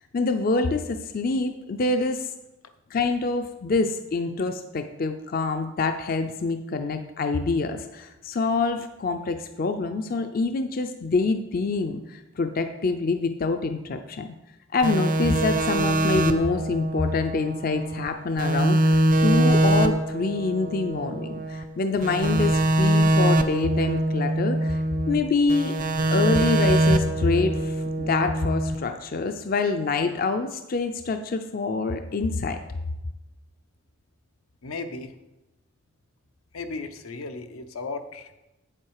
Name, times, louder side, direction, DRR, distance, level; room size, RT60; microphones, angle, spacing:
voice 1, 0.1-2.3 2.9-14.3 14.7-25.7 26.1-32.6, left 3 dB, 45° left, 7 dB, 0.4 m, -26 dB
sound 1, 14.8-18.1 18.4-21.6 22.0-25.2 25.5-28.8, right 1 dB, 40° right, 0.6 m, -23 dB
voice 2, 34.6-35.1 36.5-38.4, left 3 dB, 85° left, 7 dB, 0.8 m, -35 dB
8.7 x 7.5 x 4.7 m, 0.99 s
head